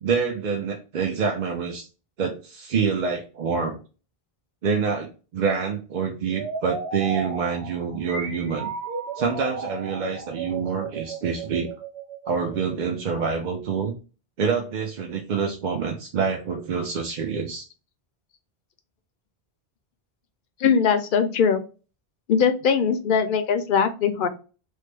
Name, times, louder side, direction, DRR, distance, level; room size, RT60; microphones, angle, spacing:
voice 1, 0.0-1.9 2.2-3.8 4.6-8.7 9.2-11.7 12.3-14.0 14.4-17.6, right 5 dB, 55° right, 2 dB, 0.6 m, -26 dB
sound 1, 6.3-13.0, right 5 dB, 85° right, 1.0 m, -34 dB
voice 2, 20.6-21.6 22.3-24.3, left 6 dB, 65° left, 9 dB, 0.7 m, -21 dB
3.2 x 2.0 x 3.1 m, 0.34 s
omnidirectional pair, 1.0 m